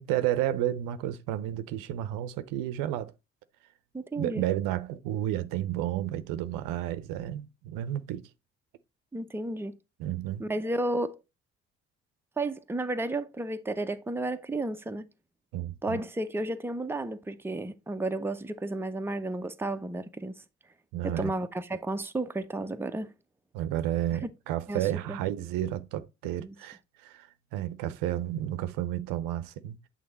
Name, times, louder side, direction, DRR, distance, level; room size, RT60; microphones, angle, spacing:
voice 1, 0.0-3.1 4.2-8.3 10.0-10.5 15.5-16.0 20.9-21.3 23.5-29.8, right 12 dB, 65° right, 0.7 m, -31 dB
voice 2, 3.9-4.4 9.1-9.7 10.4-11.2 12.4-15.0 15.8-20.4 21.0-23.1 24.2-24.3 24.7-24.8 25.1-25.2 26.4-26.5, right 2 dB, 5° right, 0.7 m, -32 dB
8.6 x 3.6 x 4.1 m
hypercardioid pair, 50°, 35 cm